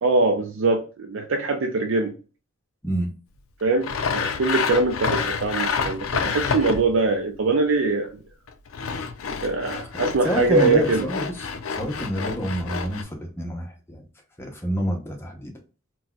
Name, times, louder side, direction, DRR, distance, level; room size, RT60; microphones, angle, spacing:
voice 1, 0.0-2.1 3.6-8.1 9.4-11.1, right 3 dB, 65° right, 0.4 m, -22 dB
voice 2, 2.8-3.1 10.2-11.5 11.8-14.0 14.4-15.5, equal, 10° left, 0.7 m, -27 dB
Sawing, 3.8-7.0 8.5-13.0, left 5 dB, 85° left, 0.4 m, -28 dB
3.9 x 2.2 x 2.2 m
head